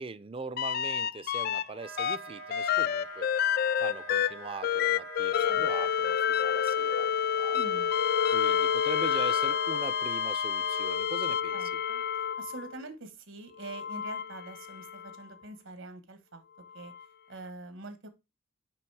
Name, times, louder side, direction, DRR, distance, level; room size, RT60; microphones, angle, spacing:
voice 1, 0.0-3.3 3.8-7.6 8.3-11.5, right 3 dB, 30° right, 0.5 m, -41 dB
sound 1, 0.6-1.6 2.0-12.7 13.6-15.2 16.9-17.0, left 8 dB, 50° left, 0.3 m, -29 dB
Wind instrument woodwind instrument, 1.7-11.0, right 5 dB, 90° right, 1.6 m, -45 dB
voice 2, 5.3-5.7 7.5-7.9 11.5-16.4 16.7-16.9 17.3-18.1, right 2 dB, 75° right, 1.3 m, -45 dB
6.0 x 5.2 x 4.7 m
head